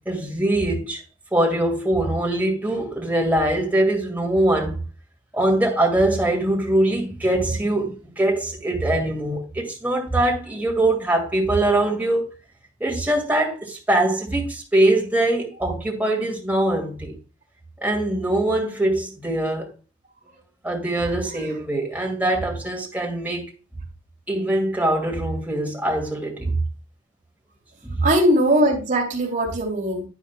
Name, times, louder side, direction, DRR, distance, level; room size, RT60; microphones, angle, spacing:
voice 1, 0.1-1.0 1.3-4.8 5.3-12.2 12.8-17.1 17.8-19.7 20.6-23.5 24.3-26.5 27.8-28.1, right 1 dB, 10° right, 2.2 m, -22 dB
voice 2, 28.0-30.0, right 1 dB, 40° right, 2.7 m, -20 dB
9.9 x 9.2 x 2.2 m
head